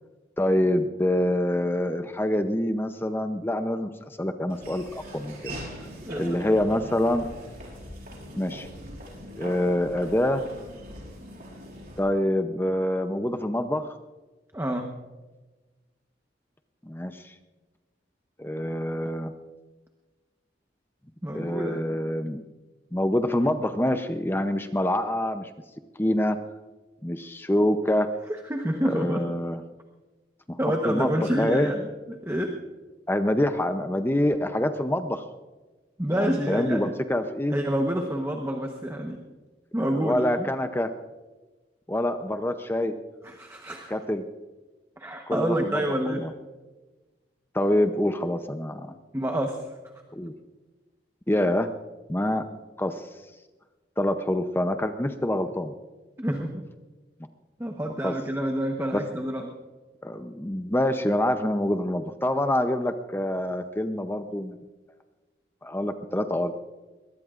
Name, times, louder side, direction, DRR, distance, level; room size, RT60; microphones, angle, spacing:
voice 1, 0.4-5.5 6.2-7.2 8.3-8.7 9.4-10.5 12.0-13.9 16.9-17.3 18.4-19.3 21.3-22.4 22.9-25.5 26.0-26.4 27.0-28.1 28.8-29.6 30.5-30.6 30.8-31.1 31.4-31.7 33.1-35.2 36.1-37.5 39.8-40.9 41.9-42.9 43.9-44.3 45.3-46.3 47.5-48.9 50.1-50.3 51.3-51.7 52.1-52.5 52.8-53.1 54.0-55.7 58.0-58.1 58.9-59.0 60.0-64.6 65.6-66.5, left 1 dB, 10° left, 8 dB, 0.6 m, -26 dB
Laughter / Walk footsteps, 4.5-12.0, equal, 55° right, 5.0 m, -41 dB
voice 2, 6.0-6.6 14.5-14.9 21.2-21.9 28.3-29.3 30.6-32.6 36.0-36.9 37.5-39.2 39.7-40.5 43.2-44.0 45.0-46.3 49.1-49.7 56.2-56.7 57.6-59.5, equal, 15° right, 2 dB, 1.0 m, -28 dB
22.0 x 19.0 x 2.5 m, 1.2 s
head